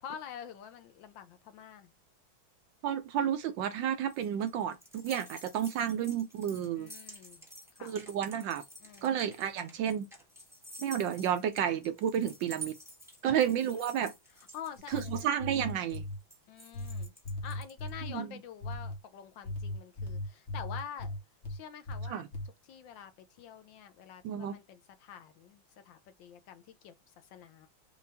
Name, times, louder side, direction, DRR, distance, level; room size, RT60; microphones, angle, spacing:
voice 1, 0.0-1.9 6.8-7.5 7.7-8.0 8.8-9.1 13.2-13.4 14.5-15.3 15.6-15.7 16.5-17.1 17.4-21.2 21.5-22.2 22.6-27.7, left 8 dB, 70° left, 1.3 m, -47 dB
voice 2, 2.8-6.9 7.8-8.6 9.0-10.1 10.8-12.7 13.2-14.1 14.9-16.0 18.1-18.3 22.1-22.3 24.2-24.6, right 9 dB, 70° right, 1.2 m, -31 dB
sound 1, 3.8-17.9, right 2 dB, ahead, 1.1 m, -50 dB
sound 2, 14.8-16.2 16.7-18.1 18.6-19.0 19.4-21.6 21.9-22.5, left 1 dB, 40° left, 1.2 m, -38 dB
5.6 x 2.5 x 3.4 m
omnidirectional pair, 2.3 m